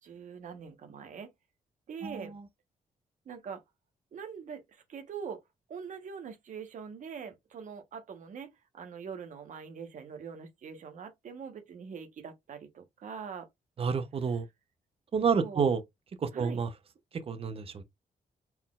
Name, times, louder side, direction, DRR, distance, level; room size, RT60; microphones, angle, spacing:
voice 1, 0.0-1.3 1.9-2.3 3.2-3.6 4.1-5.4 5.7-8.5 8.7-13.5 14.3-14.4 15.3-15.7 16.3-16.6, right 6 dB, 60° right, 1.2 m, -43 dB
voice 2, 13.8-14.4 15.1-15.8 16.2-16.7 17.3-17.8, right 6 dB, 40° right, 0.7 m, -29 dB
4.4 x 3.7 x 2.4 m
cardioid pair, 135°, 15 cm